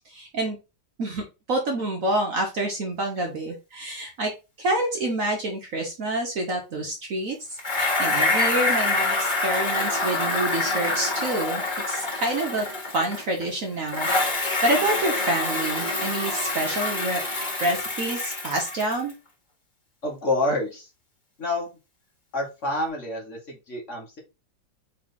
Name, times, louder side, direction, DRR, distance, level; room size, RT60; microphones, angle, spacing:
voice 1, 0.1-0.6 1.0-4.3 4.6-7.4 7.7-12.7 12.9-17.2 17.6-19.1, right 2 dB, 55° right, 2 dB, 1.1 m, -27 dB
Bicycle, 7.6-13.4 13.9-19.1, left 2 dB, 25° left, 2.0 m, -26 dB
voice 2, 20.0-20.9 21.4-21.8 22.3-24.2, left 2 dB, 45° left, -1 dB, 1.5 m, -28 dB
4.0 x 3.3 x 3.8 m, 0.28 s
omnidirectional pair, 2.0 m